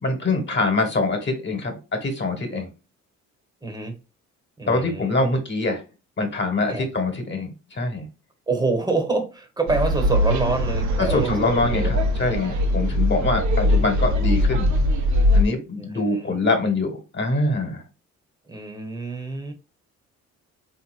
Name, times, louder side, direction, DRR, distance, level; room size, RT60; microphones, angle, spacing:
voice 1, 0.0-2.7 4.7-5.8 6.2-8.1 11.0-14.7 15.3-17.8, left 2 dB, 35° left, 1.4 m, -24 dB
voice 2, 3.6-3.9 4.6-5.2 6.7-6.9 8.5-11.4 11.6-12.1 13.8-13.9 15.8-16.3 18.5-19.5, right 3 dB, 15° right, 1.0 m, -27 dB
sound 1, 9.7-15.4, left 1 dB, 70° right, 0.9 m, -21 dB
3.6 x 2.9 x 2.5 m
cardioid pair, 90°, 30 cm